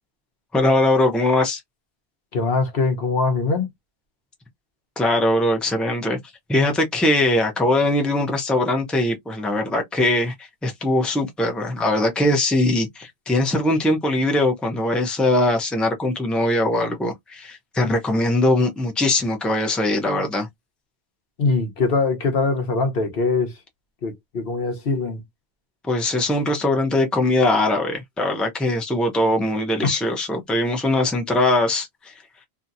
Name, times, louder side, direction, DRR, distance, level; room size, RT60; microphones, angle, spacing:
voice 1, 0.5-1.6 5.0-6.2 6.5-20.5 25.8-32.1, left 1 dB, ahead, 0.7 m, -21 dB
voice 2, 2.3-3.7 21.4-23.5 24.0-25.2 29.8-29.9, left 4 dB, 65° left, 1.1 m, -22 dB
2.8 x 2.8 x 2.5 m
omnidirectional pair, 1.1 m